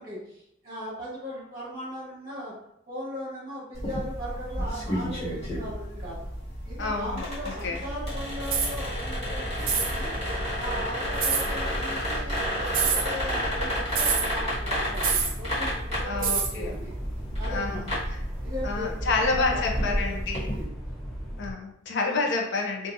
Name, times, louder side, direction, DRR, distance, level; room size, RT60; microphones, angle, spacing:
voice 1, 0.0-2.5 2.9-6.3 6.6-10.1 10.5-16.9 17.4-18.0 18.3-20.7, equal, 25° right, -8 dB, 1.0 m, -38 dB
sound 1, 3.7-20.6, equal, 35° left, 1.4 m, -32 dB
voice 2, 6.8-7.8 16.1-16.7 17.5-17.8 18.1-18.2 18.6-20.5 21.4-22.9, left 3 dB, 60° left, 1 dB, 0.5 m, -29 dB
sound 2, 8.0-21.5, equal, ahead, 0.5 m, -37 dB
sound 3, 8.5-8.8 9.6-9.9 11.2-11.5 12.7-13.1 14.0-14.3 15.0-15.4 16.2-16.5, right 6 dB, 45° right, 0.4 m, -25 dB
2.7 x 2.4 x 2.5 m, 0.76 s
head